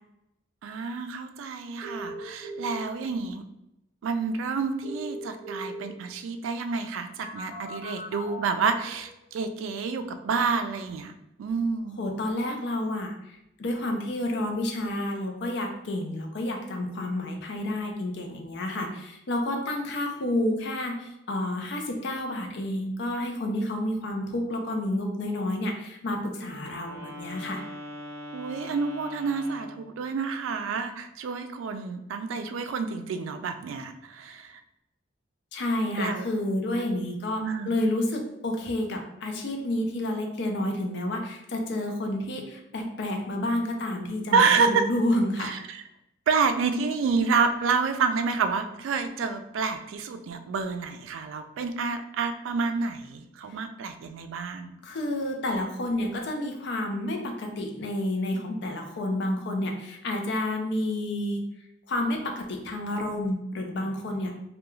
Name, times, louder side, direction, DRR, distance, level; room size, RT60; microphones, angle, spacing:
voice 1, 0.6-3.4 4.0-11.1 11.4-12.0 28.3-34.6 36.0-36.2 37.4-37.8 44.3-44.8 45.4-45.8 46.3-54.7, right 5 dB, 85° right, 9 dB, 0.3 m, -28 dB
sound 1, 1.8-2.8 4.8-5.8 7.2-9.0, right 1 dB, 10° left, 0.9 m, -38 dB
voice 2, 12.0-27.6 35.5-45.6 54.8-61.4 61.9-64.3, left 1 dB, 60° left, 3 dB, 0.5 m, -30 dB
Wind instrument woodwind instrument, 26.3-29.9, left 1 dB, 20° right, 0.7 m, -41 dB
2.3 x 2.2 x 3.0 m, 0.86 s
head